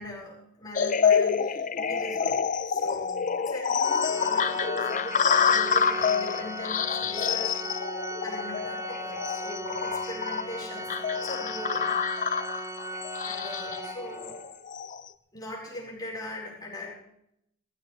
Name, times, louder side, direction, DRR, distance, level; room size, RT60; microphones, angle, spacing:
voice 1, 0.0-7.8 8.2-11.9 13.2-14.4 15.3-16.9, left 1 dB, 20° left, -5 dB, 5.4 m, -40 dB
sound 1, 0.8-15.0, left 6 dB, 35° left, 0.5 m, -27 dB
Organ, 3.8-14.5, right 1 dB, 15° right, 0.8 m, -37 dB
18.5 x 15.0 x 3.4 m, 0.75 s
head